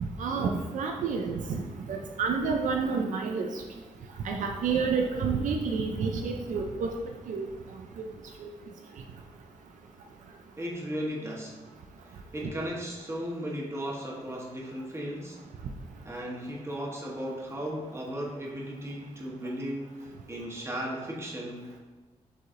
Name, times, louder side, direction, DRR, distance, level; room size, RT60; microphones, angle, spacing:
voice 1, 0.2-1.6 1.9-3.6 4.2-6.9 7.3-7.5 8.0-8.1 8.4-8.5, right 5 dB, 80° right, 2 dB, 0.4 m, -29 dB
voice 2, 10.6-11.6 12.0-15.4 16.0-21.8, equal, 20° right, -2 dB, 1.1 m, -36 dB
6.5 x 3.1 x 2.5 m, 1.2 s
cardioid pair, 75°, 13 cm